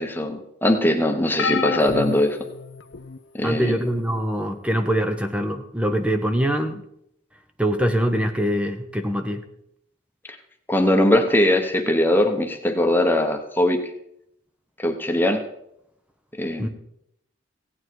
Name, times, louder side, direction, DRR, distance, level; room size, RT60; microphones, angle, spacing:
voice 1, 0.0-2.4 3.3-3.9 10.7-13.8 14.8-15.4 16.4-16.7, left 1 dB, 10° left, 5 dB, 1.1 m, -20 dB
sound 1, 1.4-3.2 3.9-4.2 5.5-5.6, left 4 dB, 75° left, 0.7 m, -29 dB
voice 2, 3.4-6.8 7.6-9.4 16.6-16.7, equal, 5° right, 7 dB, 0.8 m, -23 dB
16.0 x 9.1 x 4.6 m, 0.76 s
head